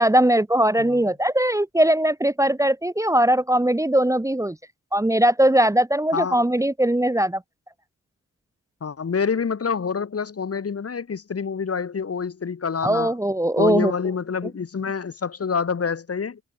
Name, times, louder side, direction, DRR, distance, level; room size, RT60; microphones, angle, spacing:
voice 1, 0.0-4.6 4.9-7.4 12.8-13.9, right 1 dB, 10° right, 1.3 m, -20 dB
voice 2, 6.1-6.5 8.8-13.2 13.6-16.4, left 6 dB, 50° left, 2.5 m, -27 dB
wide cardioid pair, 160°, 31 cm